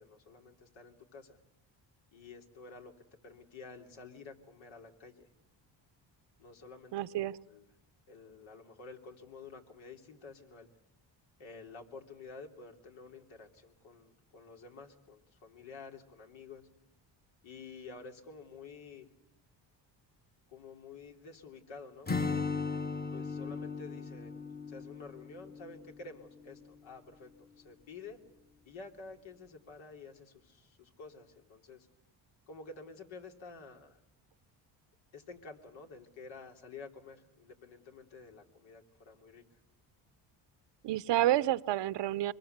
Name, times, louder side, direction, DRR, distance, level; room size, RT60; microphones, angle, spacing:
voice 1, 0.0-1.4 2.1-2.9 3.2-5.3 6.4-7.0 7.5-7.6 8.1-10.7 11.4-16.7 17.4-19.1 20.5-22.4 23.1-28.2 28.6-31.9 32.5-34.0 35.1-39.6, left 4 dB, 75° left, 2 dB, 3.4 m, -50 dB
voice 2, 6.9-7.4 40.8-42.3, right 14 dB, 65° right, 16 dB, 0.8 m, -29 dB
Acoustic guitar / Strum, 22.1-26.0, left 4 dB, 20° left, 1.2 m, -37 dB
24.5 x 22.0 x 8.1 m, 0.81 s
cardioid pair, 90°, 46 cm